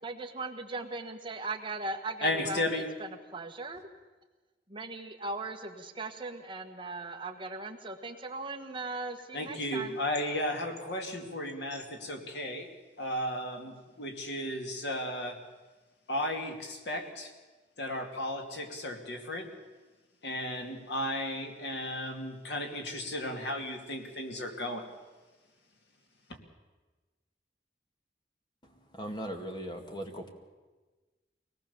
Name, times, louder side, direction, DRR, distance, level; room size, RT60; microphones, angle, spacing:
voice 1, 0.0-3.8 4.7-10.0, right 3 dB, 30° right, 4 dB, 1.5 m, -39 dB
voice 2, 2.2-2.9 9.3-12.7 13.0-15.4 16.1-17.3 17.8-19.5 20.2-24.9, left 1 dB, 75° left, 4 dB, 2.6 m, -34 dB
voice 3, 28.9-30.3, equal, 25° left, 4 dB, 2.1 m, -38 dB
23.5 x 18.5 x 7.1 m, 1.3 s
head